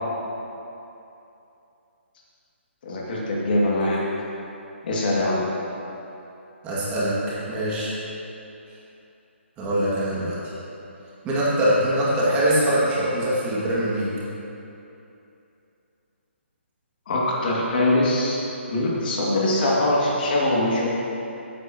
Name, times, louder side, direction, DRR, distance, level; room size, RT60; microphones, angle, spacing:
voice 1, 2.8-4.0 4.8-5.4 17.1-18.4 18.7-20.9, left 1 dB, 45° left, -4 dB, 2.3 m, -22 dB
voice 2, 6.6-8.0 9.6-10.4 11.2-14.1, right 1 dB, 20° right, -8 dB, 2.2 m, -23 dB
15.0 x 9.1 x 3.0 m, 2.8 s
figure-of-eight pair, 145°, 7 cm